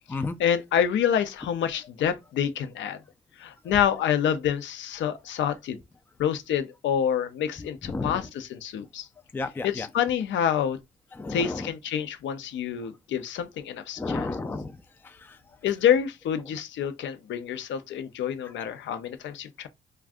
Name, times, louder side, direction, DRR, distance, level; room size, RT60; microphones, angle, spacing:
voice 1, 0.1-3.0 3.4-5.8 6.2-9.1 9.6-10.8 11.3-14.3 15.6-19.7, left 9 dB, 70° left, 0.6 m, -27 dB
voice 2, 7.6-8.3 9.3-9.9 11.1-11.7 14.0-14.8 15.0-15.4, left 3 dB, 10° left, 0.3 m, -32 dB
2.5 x 2.2 x 3.5 m
cardioid pair, 90°, 20 cm